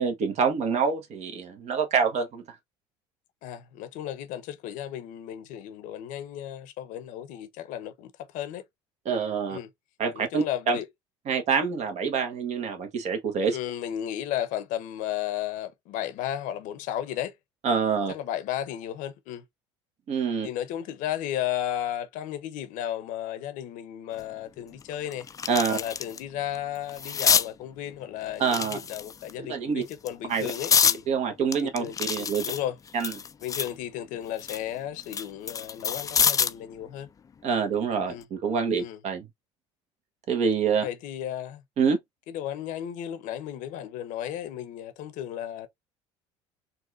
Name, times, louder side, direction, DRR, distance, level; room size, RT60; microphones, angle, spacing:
voice 1, 0.0-2.4 9.0-9.6 10.0-10.8 11.3-13.6 17.6-18.1 20.1-20.5 25.5-25.8 28.4-28.8 29.5-29.8 30.3-30.5 31.1-32.4 32.9-33.1 37.4-39.3 40.3-40.8 41.8-42.0, right 6 dB, 50° right, 1.1 m, -26 dB
voice 2, 3.4-8.6 9.5-9.7 10.1-10.9 13.5-17.3 18.1-19.4 20.4-25.3 25.7-31.0 31.6-32.8 33.4-37.1 38.1-38.3 38.8-39.0 40.8-41.6 42.3-45.7, left 11 dB, 65° left, 0.8 m, -34 dB
sound 1, 24.2-24.3 24.8-26.2 26.5-27.5 28.4-29.3 29.9-31.0 31.5-33.8 34.2-36.6 38.0-38.2, left 7 dB, 25° left, 0.3 m, -27 dB
4.0 x 2.4 x 2.4 m
hypercardioid pair, 70°, 15 cm